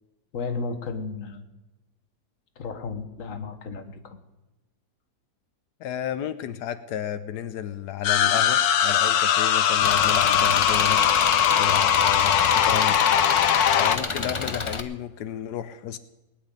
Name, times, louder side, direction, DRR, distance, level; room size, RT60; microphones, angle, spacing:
voice 1, 0.3-1.5 2.6-4.2, left 4 dB, 55° left, 7 dB, 1.6 m, -33 dB
voice 2, 5.8-11.0 11.6-13.0 13.7-16.0, left 10 dB, 90° left, 11 dB, 1.3 m, -32 dB
sound 1, 8.0-14.0, left 9 dB, 70° left, 1.3 m, -20 dB
Engine, 9.8-14.8, left 4 dB, 30° left, 0.5 m, -29 dB
19.0 x 6.6 x 9.8 m, 1.0 s
omnidirectional pair, 1.7 m